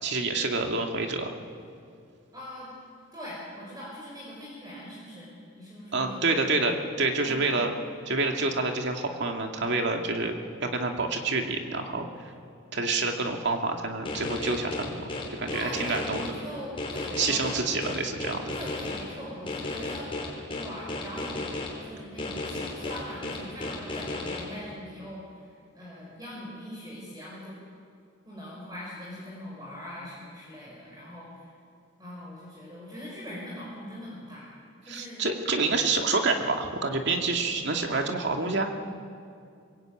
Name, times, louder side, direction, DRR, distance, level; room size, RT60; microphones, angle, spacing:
voice 1, 0.0-1.3 5.9-7.7 8.1-10.3 10.6-12.1 12.7-15.1 15.4-16.2 17.2-18.5 34.9-38.7, right 3 dB, 60° right, 3 dB, 2.3 m, -27 dB
voice 2, 2.3-2.7 3.1-5.3 5.6-6.7 7.2-7.7 15.5-17.9 18.5-20.1 20.5-21.5 21.8-25.5 25.7-27.6 28.2-31.5 32.0-34.5 34.8-35.3, equal, 20° right, -5 dB, 5.6 m, -41 dB
sound 1, 14.1-16.3 16.8-19.0 19.5-21.7 22.2-24.4, left 2 dB, 25° left, 4.6 m, -33 dB
23.5 x 21.5 x 9.0 m, 2.5 s
head